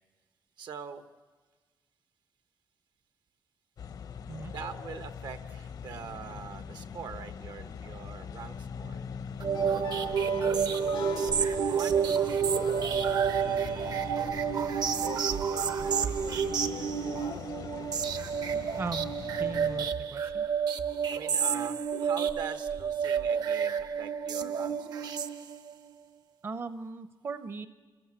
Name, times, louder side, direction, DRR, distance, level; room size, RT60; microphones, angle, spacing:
voice 1, 0.6-1.0 4.4-9.0 11.7-14.3 14.9-16.1 21.1-25.1, right 7 dB, 80° right, 9 dB, 1.2 m, -43 dB
sound 1, 3.8-19.9, left 7 dB, 60° left, 0.7 m, -42 dB
sound 2, 9.4-25.8, right 7 dB, 65° right, 0.9 m, -29 dB
sound 3, 9.5-19.0, left 8 dB, 90° left, 0.8 m, -46 dB
voice 2, 18.8-20.5 26.4-27.7, right 4 dB, 35° right, 11 dB, 0.6 m, -38 dB
27.5 x 14.0 x 8.7 m, 1.4 s
wide cardioid pair, 175°, 7 cm